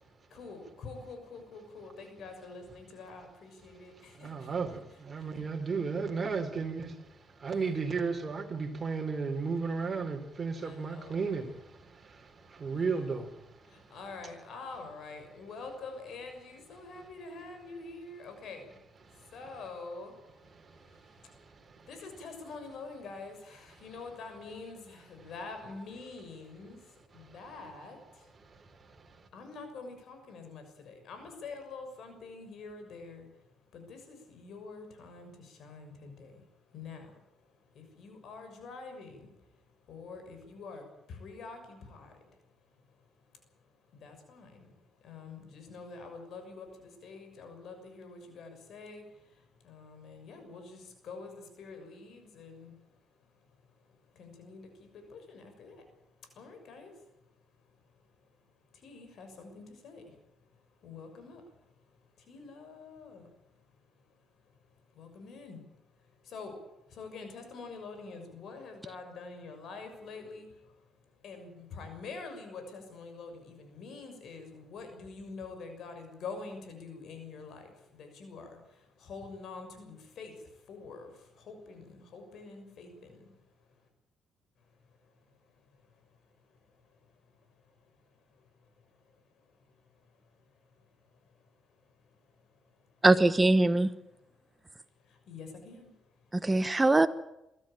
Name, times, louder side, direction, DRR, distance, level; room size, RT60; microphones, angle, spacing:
voice 1, 0.2-4.5 5.2-5.5 7.4-7.7 10.6-11.5 12.0-12.3 12.7-13.3 13.6-28.3 29.2-83.9 84.6-93.1 94.8-96.5, left 4 dB, 70° left, 6 dB, 6.5 m, -47 dB
voice 2, 3.9-14.0 19.0-19.3 20.5-21.9 27.1-27.4 28.4-29.3, right 4 dB, 35° right, 4 dB, 3.9 m, -35 dB
voice 3, 93.0-93.9 96.3-97.1, right 2 dB, 15° right, 11 dB, 1.2 m, -22 dB
24.5 x 13.5 x 9.0 m, 0.89 s
cardioid pair, 90°, 0 cm